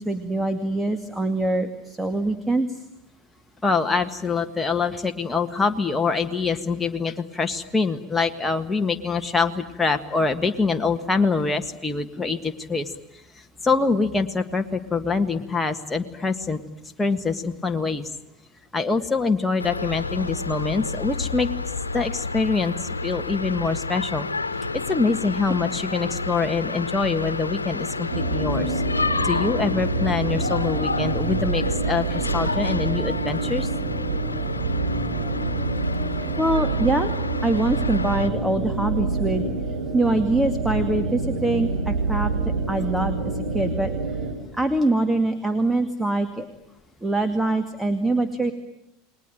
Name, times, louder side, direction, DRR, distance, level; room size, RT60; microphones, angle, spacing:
voice 1, 0.0-2.8 36.4-37.1 37.4-39.5 39.9-42.3 42.7-43.9 44.5-46.5 47.0-48.5, right 2 dB, 5° right, 8 dB, 2.2 m, -24 dB
voice 2, 3.6-12.9 13.6-16.6 17.0-18.1 18.7-21.5 21.9-24.3 24.9-28.8 29.2-33.7, left 4 dB, 15° left, 5 dB, 1.7 m, -24 dB
sound 1, 19.6-38.3, left 3 dB, 90° left, 1.3 m, -30 dB
sound 2, 28.1-44.3, right 3 dB, 65° right, 5.6 m, -27 dB
29.5 x 21.0 x 9.2 m, 0.86 s
figure-of-eight pair, 80°, 0 cm